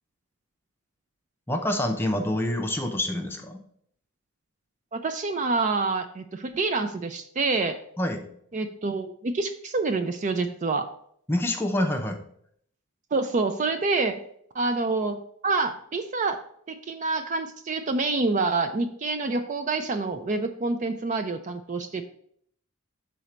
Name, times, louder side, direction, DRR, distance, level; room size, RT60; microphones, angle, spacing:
voice 1, 1.5-3.6 8.0-8.3 11.3-12.2, left 1 dB, 10° left, 3 dB, 0.6 m, -27 dB
voice 2, 4.9-7.8 8.5-10.9 13.1-14.2 14.5-16.4 16.7-22.0, right 3 dB, 35° right, 8 dB, 0.4 m, -27 dB
6.2 x 4.0 x 4.3 m, 0.66 s
head